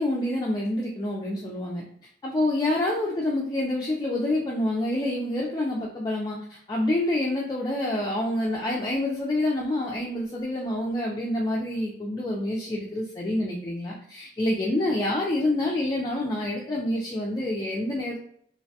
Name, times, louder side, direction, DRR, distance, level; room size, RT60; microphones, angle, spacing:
voice 1, 0.0-1.8 2.2-18.2, left 1 dB, 20° left, -3 dB, 0.3 m, -27 dB
2.5 x 2.1 x 2.6 m, 0.64 s
head